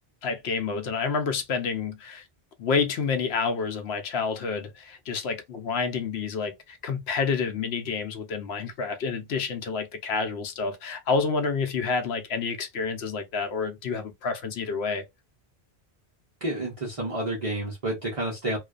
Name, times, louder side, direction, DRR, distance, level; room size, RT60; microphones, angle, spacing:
voice 1, 0.2-2.2 2.6-15.0, left 5 dB, 80° left, 0.9 m, -29 dB
voice 2, 16.4-18.6, right 1 dB, 35° right, 0.8 m, -30 dB
2.4 x 2.2 x 2.4 m
omnidirectional pair, 1.1 m